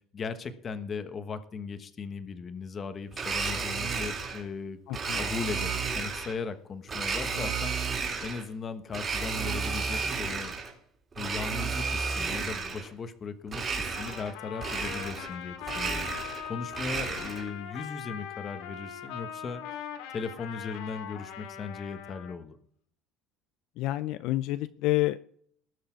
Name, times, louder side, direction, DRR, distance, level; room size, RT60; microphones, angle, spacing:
voice 1, 0.1-4.8 5.1-10.5 11.2-19.6 20.1-22.6, left 5 dB, 30° left, 10 dB, 1.2 m, -38 dB
Domestic sounds home sounds, 3.1-4.4 4.9-6.4 6.9-8.5 8.9-10.7 11.1-12.9 13.5-14.3 14.6-15.4 15.6-17.5, right 5 dB, 25° right, 3.9 m, -32 dB
voice 2, 4.9-5.2 23.8-25.2, left 17 dB, 65° left, 13 dB, 0.5 m, -28 dB
Trumpet, 13.9-22.4, left 9 dB, 90° left, 2.3 m, -41 dB
19.0 x 6.6 x 4.6 m, 0.64 s
cardioid pair, 145°, 0 cm